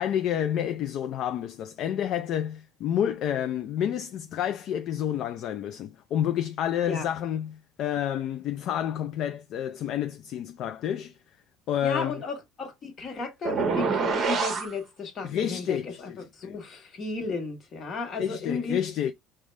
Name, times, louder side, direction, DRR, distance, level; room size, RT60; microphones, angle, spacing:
voice 1, 0.0-11.2 11.7-12.2 15.2-16.6 18.2-19.1, left 10 dB, 50° left, 0.3 m, -29 dB
voice 2, 11.8-18.8, left 4 dB, 30° left, 1.1 m, -34 dB
sound 1, 13.5-14.7, right 5 dB, 30° right, 0.7 m, -26 dB
4.9 x 2.2 x 3.1 m
cardioid pair, 150°, 0 cm